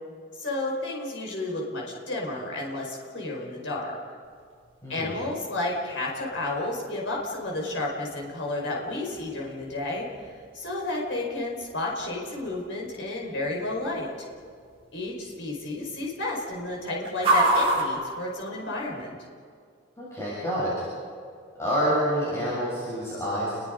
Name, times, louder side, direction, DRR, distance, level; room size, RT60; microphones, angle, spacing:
voice 1, 0.3-3.9 4.9-14.3 14.9-19.2, left 2 dB, 65° left, -2 dB, 5.1 m, -31 dB
sound 1, 4.2-19.1, right 1 dB, 30° right, 5.0 m, -33 dB
voice 2, 4.8-5.1 20.0-20.9 21.6-23.6, equal, 15° left, -9 dB, 7.5 m, -27 dB
29.5 x 22.0 x 5.3 m, 2.2 s
head